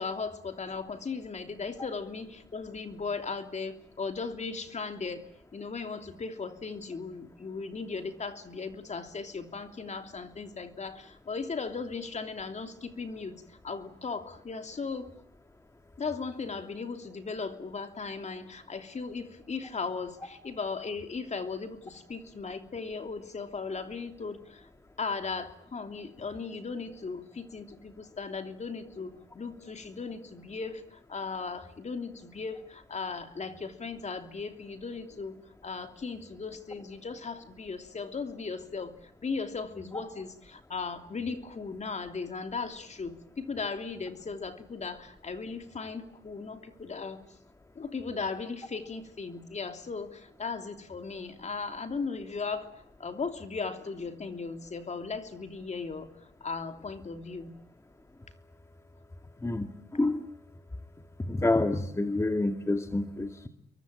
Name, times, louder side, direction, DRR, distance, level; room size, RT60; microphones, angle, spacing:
voice 1, 0.0-5.2 5.5-15.1 16.0-24.7 25.0-35.3 35.6-47.2 47.7-57.5, left 4 dB, 35° left, 7 dB, 3.0 m, -37 dB
voice 2, 59.4-60.3 61.3-63.5, left 2 dB, 15° left, 6 dB, 2.1 m, -28 dB
29.0 x 23.0 x 8.9 m, 0.72 s
cardioid pair, 90°, 20 cm